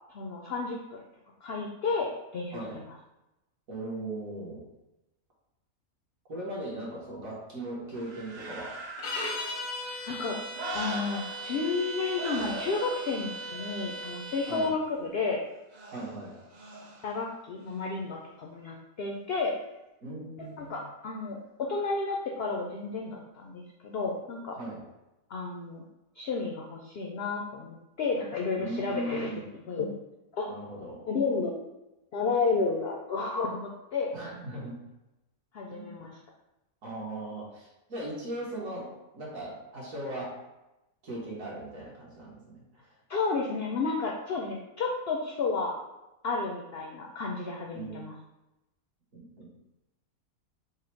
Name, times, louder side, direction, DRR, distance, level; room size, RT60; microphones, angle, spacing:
voice 1, 0.1-1.0 1.4-2.1 2.3-2.8 10.1-10.4 10.7-15.4 17.0-19.5 20.6-24.6 25.3-25.8 26.2-29.3 29.7-29.9 30.3-30.5 31.1-31.5 32.1-34.1 35.5-36.1 43.1-45.7 46.2-48.1, left 4 dB, 70° left, 0 dB, 0.5 m, -31 dB
voice 2, 2.5-2.8 3.7-4.6 6.3-8.8 14.5-14.7 15.9-16.4 20.0-20.9 24.5-24.8 28.6-29.4 30.5-31.1 34.1-34.8 35.7-36.0 36.8-40.4 41.0-43.0 47.7-48.1 49.1-49.5, right 1 dB, 65° right, -4 dB, 1.6 m, -39 dB
sound 1, 7.9-11.9 12.1-14.7 15.7-17.2 17.7-17.8, right 2 dB, 90° right, 0.3 m, -42 dB
sound 2, 9.0-14.8, equal, 90° left, 1.3 m, -38 dB
4.8 x 2.0 x 4.4 m, 0.98 s
omnidirectional pair, 1.6 m